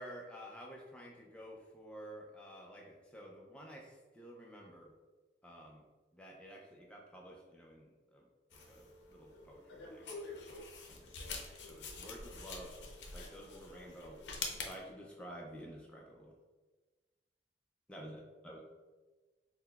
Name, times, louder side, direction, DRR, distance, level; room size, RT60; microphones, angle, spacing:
voice 1, 0.0-4.9 5.4-5.8 6.1-8.3 8.5-12.8 13.1-14.2 14.6-16.3 17.9-18.6, equal, 5° left, -2 dB, 0.4 m, -51 dB
sound 1, 8.5-14.8, left 3 dB, 85° left, 0.5 m, -46 dB
5.7 x 2.1 x 2.3 m, 1.3 s
head